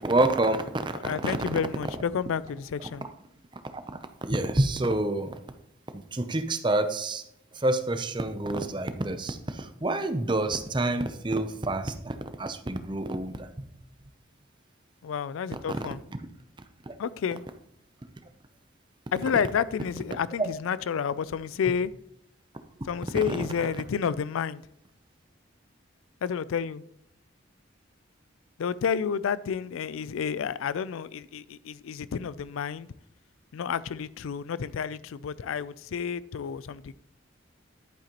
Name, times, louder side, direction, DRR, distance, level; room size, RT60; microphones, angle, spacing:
voice 1, 0.0-1.3 3.7-3.8 4.2-5.4 5.9-7.2 7.5-13.5 15.7-15.8 16.9-17.0 20.4-20.5, right 2 dB, 25° right, 0.6 m, -28 dB
voice 2, 0.9-3.1 15.0-16.0 17.0-17.4 19.1-21.9 22.8-24.6 26.2-26.8 28.6-32.9 33.5-36.9, left 7 dB, 90° left, 0.4 m, -30 dB
10.5 x 8.9 x 3.0 m
head